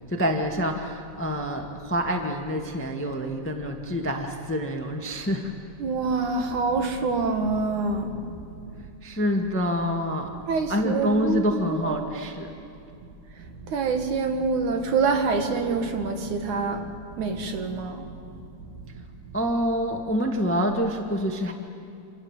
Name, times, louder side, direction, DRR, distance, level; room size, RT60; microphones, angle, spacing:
voice 1, 0.1-5.5 9.0-10.3 10.7-12.5 19.3-21.5, equal, 5° left, 3 dB, 0.9 m, -27 dB
voice 2, 5.8-8.2 10.5-12.3 13.4-16.9 17.2-18.2, right 4 dB, 75° right, 5 dB, 3.2 m, -26 dB
27.5 x 27.5 x 7.4 m, 2.5 s
omnidirectional pair, 3.5 m